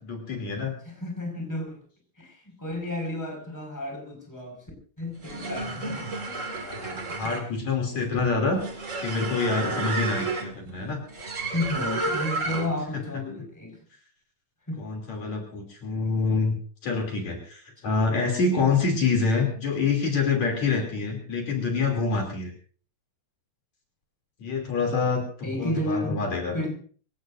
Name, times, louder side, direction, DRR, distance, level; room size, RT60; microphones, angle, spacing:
voice 1, 0.0-0.8 6.6-8.6 9.0-11.0 14.8-16.6 16.8-22.5 24.4-25.2 25.6-26.5, left 4 dB, 60° left, 4.1 m, -26 dB
voice 2, 0.8-1.8 2.2-4.6 5.0-6.1 11.5-13.8 14.7-14.9 25.4-26.2 26.5-26.7, left 1 dB, 5° left, 5.0 m, -32 dB
sound 1, 5.1-12.9, right 3 dB, 30° right, 1.8 m, -32 dB
25.0 x 17.0 x 2.6 m
omnidirectional pair, 3.7 m